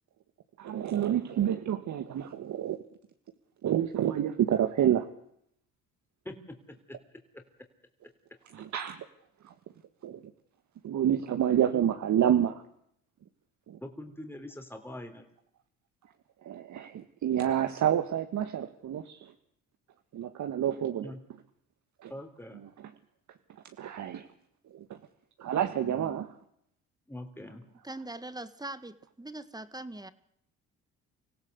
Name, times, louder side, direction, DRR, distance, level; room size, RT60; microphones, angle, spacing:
voice 1, 0.6-2.8 3.6-5.1 8.5-9.0 9.4-9.5 10.0-10.2 10.8-12.6 13.7-13.8 16.4-19.3 20.1-21.1 22.0-22.1 23.8-24.3 24.7-25.0 25.4-26.3, right 10 dB, 60° right, 7 dB, 1.7 m, -28 dB
voice 2, 6.3-7.0 7.3-7.4 11.7-11.8 13.8-15.2 21.0-21.2 22.1-22.6 25.8-26.2 27.1-27.6, left 1 dB, 5° left, 5 dB, 3.6 m, -43 dB
voice 3, 27.8-30.1, right 2 dB, 10° right, 13 dB, 1.6 m, -41 dB
25.5 x 16.5 x 8.1 m, 0.73 s
supercardioid pair, 70°, 33 cm